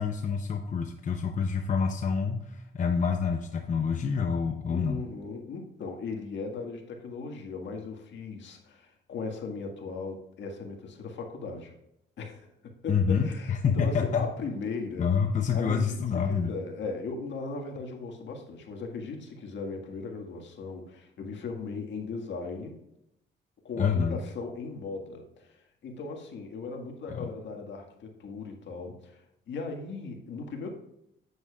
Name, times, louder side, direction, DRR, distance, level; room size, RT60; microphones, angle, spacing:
voice 1, 0.0-5.0 12.9-14.3 15.0-16.5 23.8-24.2 27.1-27.3, left 6 dB, 40° left, 5 dB, 0.8 m, -27 dB
voice 2, 4.7-11.7 12.2-12.5 12.8-15.1 15.5-22.8 23.6-30.7, left 4 dB, 65° left, 2 dB, 1.8 m, -38 dB
9.3 x 8.5 x 2.4 m, 0.81 s
cardioid pair, 90°, 20 cm